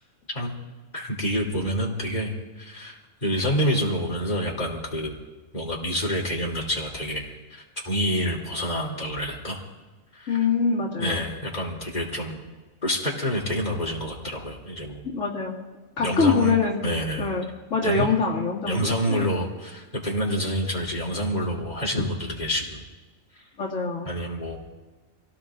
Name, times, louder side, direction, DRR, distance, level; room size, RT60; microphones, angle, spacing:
voice 1, 0.9-5.1 5.5-9.6 10.1-10.4 11.0-12.4 12.8-15.1 16.0-16.5 16.8-17.3 17.8-18.1 18.6-22.8 24.0-24.7, equal, 35° left, -3 dB, 3.3 m, -28 dB
voice 2, 10.3-11.2 15.0-15.5 16.0-16.8 17.2-17.5 17.7-19.3 23.6-24.1, left 5 dB, 75° left, -3 dB, 2.4 m, -24 dB
27.0 x 17.5 x 2.5 m, 1.2 s
omnidirectional pair, 1.3 m